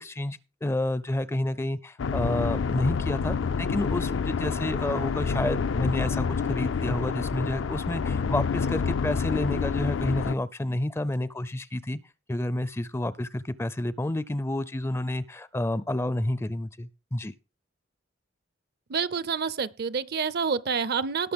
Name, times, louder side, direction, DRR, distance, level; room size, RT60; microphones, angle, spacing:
voice 1, 0.0-12.0 12.3-17.3, left 1 dB, 15° left, 0.4 m, -30 dB
sound 1, 2.0-10.3, left 5 dB, 70° left, 0.4 m, -28 dB
voice 2, 18.9-21.3, right 5 dB, 55° right, 0.6 m, -28 dB
18.5 x 6.3 x 3.5 m
head